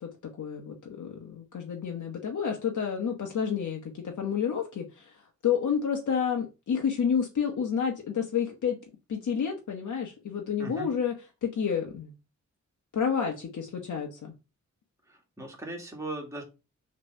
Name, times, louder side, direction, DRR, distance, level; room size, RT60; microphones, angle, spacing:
voice 1, 0.0-8.8 9.1-11.1 11.4-12.1 12.9-14.3, left 7 dB, 75° left, 2 dB, 1.2 m, -30 dB
voice 2, 15.1-16.4, right 2 dB, 10° right, 0 dB, 2.0 m, -38 dB
6.7 x 3.3 x 5.4 m, 0.28 s
wide cardioid pair, 165°, 30 cm